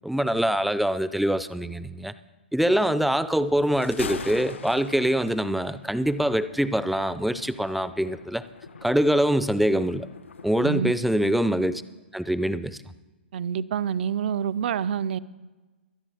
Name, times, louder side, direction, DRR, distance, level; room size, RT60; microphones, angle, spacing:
voice 1, 0.0-2.1 2.5-8.4 8.8-10.1 10.4-11.8 12.1-12.8, equal, ahead, 14 dB, 0.4 m, -24 dB
Thunder, 3.6-10.9, left 5 dB, 85° left, 1.0 m, -42 dB
voice 2, 13.3-15.2, right 8 dB, 55° right, 16 dB, 0.6 m, -27 dB
24.0 x 8.6 x 3.5 m, 1.2 s
hypercardioid pair, 130°, 6 cm